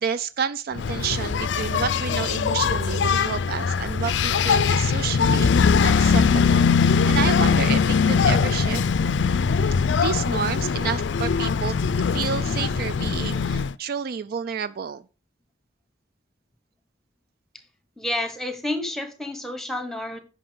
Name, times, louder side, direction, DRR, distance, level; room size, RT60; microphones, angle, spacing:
voice 1, 0.0-8.8 10.0-15.0, right 6 dB, 50° right, 0.3 m, -30 dB
Engine, 0.8-13.7, left 5 dB, 65° left, 0.4 m, -21 dB
voice 2, 18.0-20.2, left 1 dB, ahead, 1.2 m, -29 dB
9.9 x 5.9 x 3.8 m
head